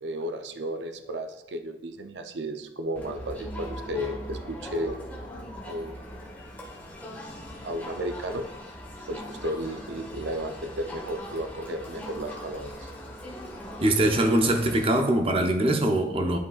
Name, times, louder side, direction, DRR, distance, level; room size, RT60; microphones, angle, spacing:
voice 1, 0.0-5.0 5.6-6.3 7.6-8.5 9.1-12.9, right 1 dB, 90° right, 7 dB, 0.6 m, -33 dB
Crowd, 3.0-14.9, equal, 10° left, 1.1 m, -40 dB
voice 2, 13.8-16.4, right 1 dB, 30° right, 4 dB, 0.6 m, -22 dB
11.0 x 5.5 x 2.4 m, 0.93 s
head